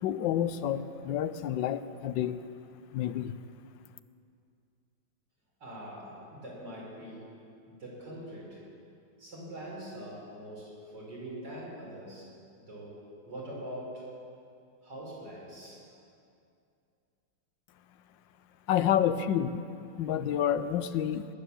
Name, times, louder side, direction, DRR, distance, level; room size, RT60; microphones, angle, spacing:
voice 1, 0.0-2.4 2.9-3.4 18.7-19.6 20.0-21.3, left 10 dB, 80° left, 12 dB, 1.3 m, -29 dB
voice 2, 5.6-7.3 7.7-8.6 9.2-12.3 12.6-14.0 14.8-15.9, right 1 dB, 65° right, -5 dB, 5.5 m, -43 dB
20.0 x 9.4 x 7.0 m, 2.5 s
omnidirectional pair, 2.0 m